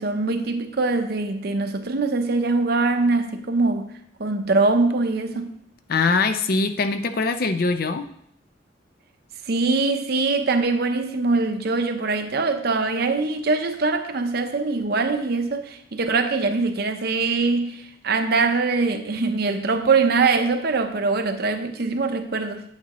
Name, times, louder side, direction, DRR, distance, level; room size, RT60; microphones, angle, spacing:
voice 1, 0.0-3.9 4.2-5.6 9.5-22.6, right 3 dB, 60° right, 0.8 m, -23 dB
voice 2, 5.9-8.1, left 4 dB, 55° left, 0.6 m, -22 dB
8.8 x 8.7 x 3.0 m
head